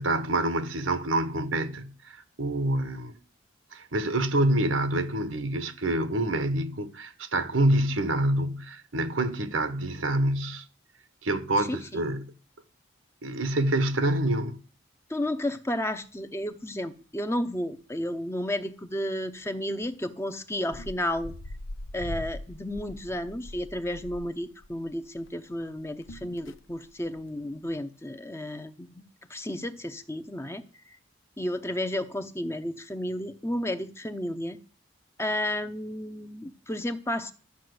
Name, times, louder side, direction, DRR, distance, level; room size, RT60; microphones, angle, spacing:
voice 1, 0.0-3.1 3.7-10.6 11.2-12.3 13.2-14.6, right 1 dB, 85° right, 1.2 m, -27 dB
voice 2, 11.6-12.0 15.1-21.3 21.9-29.0 29.3-30.6 31.4-34.6 35.2-37.3, left 1 dB, 15° left, 0.6 m, -32 dB
sound 1, 16.0-16.6 16.9-17.0 17.3-17.8 18.4-18.6 18.9-19.0 19.8-20.0 20.5-25.3 25.6-27.3 27.6-27.8, left 1 dB, 85° left, 0.7 m, -42 dB
13.0 x 5.7 x 7.9 m
head